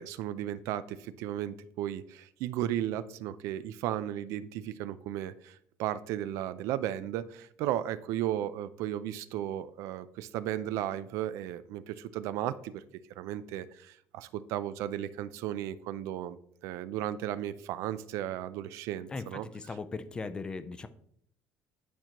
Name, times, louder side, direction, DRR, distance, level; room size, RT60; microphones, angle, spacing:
voice 1, 0.0-12.8 13.2-16.4 16.6-19.5, right 12 dB, 70° right, 15 dB, 0.4 m, -35 dB
voice 2, 19.1-20.9, left 4 dB, 15° left, 12 dB, 0.4 m, -38 dB
10.0 x 4.4 x 2.9 m, 0.67 s
cardioid pair, 175°, 5 cm